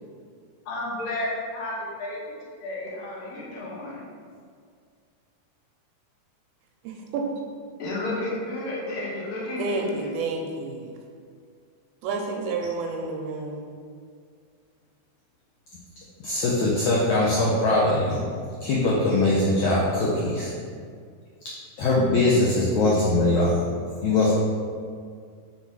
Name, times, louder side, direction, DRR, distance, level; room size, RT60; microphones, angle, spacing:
voice 1, 0.7-2.2 2.6-4.1 7.8-10.1, left 1 dB, 70° left, -5 dB, 2.7 m, -32 dB
voice 2, 6.8-7.4 9.6-11.0 12.0-13.7, right 3 dB, 80° right, 1 dB, 2.3 m, -30 dB
voice 3, 16.2-18.2 18.6-20.5 21.8-23.7 24.0-24.3, left 2 dB, 90° left, -6 dB, 1.6 m, -21 dB
5.7 x 4.2 x 4.6 m, 2.1 s
omnidirectional pair, 4.5 m